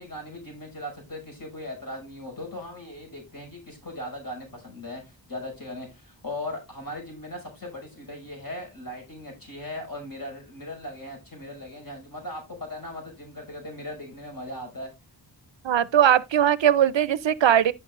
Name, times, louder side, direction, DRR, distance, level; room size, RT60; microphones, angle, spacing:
voice 1, 0.0-14.9, left 1 dB, 50° left, 5.6 m, -38 dB
voice 2, 15.6-17.7, right 10 dB, 75° right, 0.5 m, -20 dB
14.0 x 5.8 x 2.5 m
wide cardioid pair, 60°, 45 cm